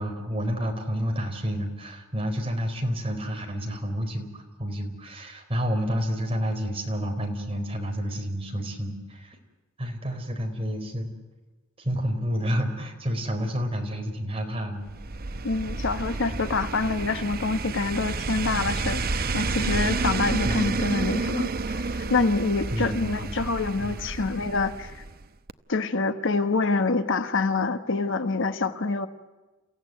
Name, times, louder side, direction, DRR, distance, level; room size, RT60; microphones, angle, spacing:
voice 1, 0.0-9.4 9.8-11.1 11.8-14.9 19.2-19.4 20.4-20.9 22.7-23.4 23.8-23.9, equal, 25° right, 4 dB, 4.3 m, -30 dB
sound 1, 14.9-25.2 25.5-25.6, right 3 dB, 45° right, 0.8 m, -30 dB
voice 2, 15.4-25.0 25.7-29.1, left 3 dB, 60° left, 10 dB, 1.2 m, -26 dB
29.5 x 16.0 x 9.4 m, 1.2 s
head